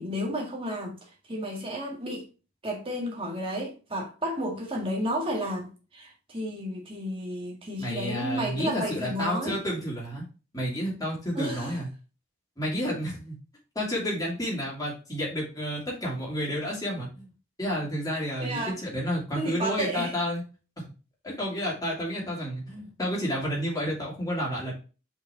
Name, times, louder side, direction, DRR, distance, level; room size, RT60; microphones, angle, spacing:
voice 1, 0.0-2.3 2.6-9.6 11.3-11.8 18.4-18.8 19.3-20.1, equal, 25° right, 1.8 m, -32 dB
voice 2, 7.8-10.2 10.5-11.9 12.6-13.4 13.7-17.3 17.6-20.4 20.8-20.9 21.2-24.7, equal, 15° left, 2.6 m, -30 dB
6.0 x 5.1 x 3.5 m
head